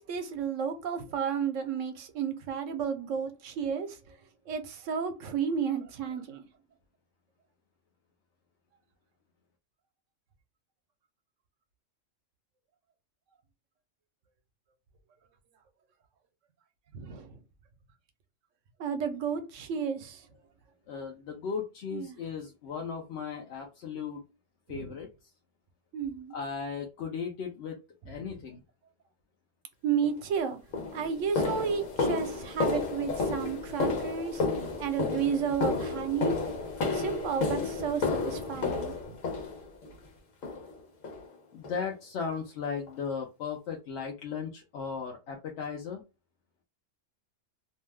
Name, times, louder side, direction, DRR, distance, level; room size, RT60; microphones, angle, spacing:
voice 1, 0.0-4.0 4.5-6.4 16.9-17.4 18.8-20.3 21.9-22.2 24.7-24.9 25.9-26.4 29.8-30.6 30.9-36.4 36.9-39.2, right 7 dB, 75° right, 1.0 m, -32 dB
voice 2, 20.9-24.2 24.7-25.3 26.3-27.8 28.1-28.6 41.5-46.0, left 6 dB, 65° left, 0.8 m, -36 dB
sound 1, 30.0-30.2 30.7-39.9 40.4-40.8 41.0-41.3 41.6-41.8 42.3-42.4 42.9-43.0, left 3 dB, 85° left, 1.2 m, -32 dB
2.7 x 2.2 x 3.2 m
omnidirectional pair, 1.3 m